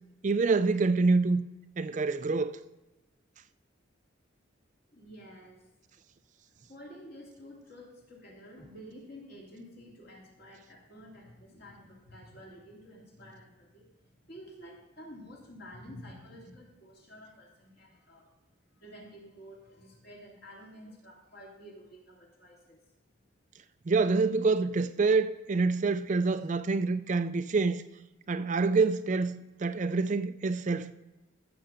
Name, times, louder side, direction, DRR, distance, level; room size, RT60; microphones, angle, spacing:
voice 1, 0.2-1.4 1.8-2.6 23.9-27.8 28.3-30.9, right 4 dB, 35° right, 0.4 m, -26 dB
voice 2, 4.9-5.6 6.7-13.9 14.2-18.3 18.8-22.8, equal, 50° left, 2.7 m, -50 dB
14.5 x 7.0 x 5.1 m
head